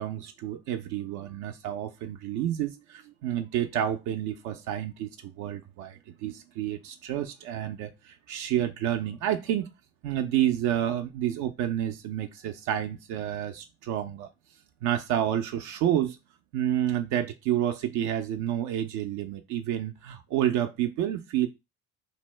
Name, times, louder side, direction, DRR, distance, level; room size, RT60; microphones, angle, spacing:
voice 1, 0.0-9.7 10.0-14.3 14.8-16.2 16.5-21.5, right 11 dB, 70° right, 0.5 m, -29 dB
2.6 x 2.1 x 3.2 m
supercardioid pair, 80°, 30 cm